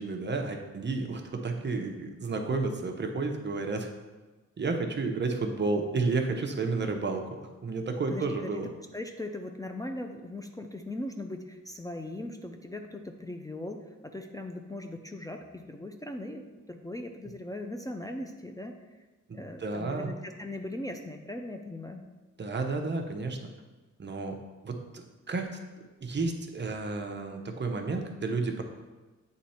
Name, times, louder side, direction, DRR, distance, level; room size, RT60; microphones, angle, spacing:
voice 1, 0.0-3.9 4.6-7.4 7.6-8.7 19.3-20.1 22.4-23.4 24.0-24.4 24.6-25.5 26.0-28.6, right 3 dB, 35° right, 3 dB, 0.7 m, -31 dB
voice 2, 8.1-8.5 8.9-18.7 19.3-22.0, left 1 dB, 10° left, 4 dB, 0.4 m, -39 dB
8.4 x 3.1 x 4.3 m, 1.2 s
wide cardioid pair, 115°, 31 cm